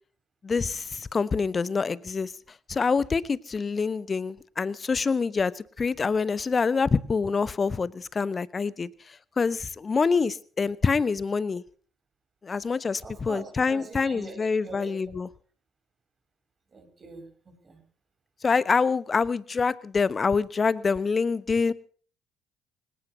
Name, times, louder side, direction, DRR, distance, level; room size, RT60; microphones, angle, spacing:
voice 1, 0.4-2.3 2.7-11.6 12.4-15.3 18.4-21.7, left 5 dB, 35° left, 1.0 m, -26 dB
voice 2, 13.0-14.9 16.7-17.8, right 4 dB, 35° right, 6.0 m, -43 dB
25.5 x 17.5 x 2.8 m
figure-of-eight pair, 50°, 0 cm